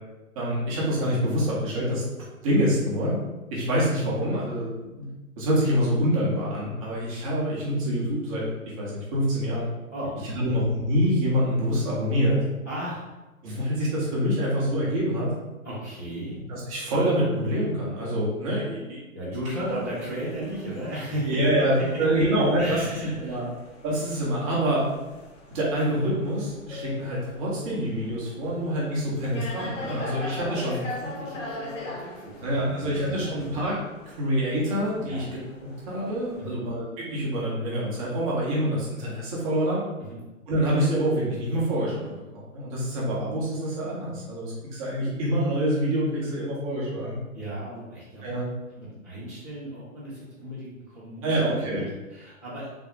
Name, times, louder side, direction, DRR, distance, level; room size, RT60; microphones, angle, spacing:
voice 1, 0.4-2.0 2.4-3.2 3.5-5.0 5.4-8.4 8.8-9.7 10.3-12.4 13.4-15.3 16.5-19.0 21.3-23.4 23.8-24.8 25.5-30.8 32.4-33.7 34.2-35.2 35.6-39.8 40.5-42.2 42.5-47.2 48.2-48.5 51.2-51.8, equal, 25° right, -6 dB, 0.9 m, -26 dB
voice 2, 9.9-10.5 12.6-13.0 15.6-16.4 19.1-22.2 22.6-23.4 29.9-30.1 30.5-33.5 35.1-35.2 36.3-36.7 40.0-40.2 47.3-48.4 48.7-52.7, equal, 15° left, -14 dB, 0.4 m, -35 dB
sound 1, 19.4-36.4, left 2 dB, 60° left, 0.9 m, -42 dB
3.4 x 2.2 x 3.8 m, 1.1 s
hypercardioid pair, 145°, 42 cm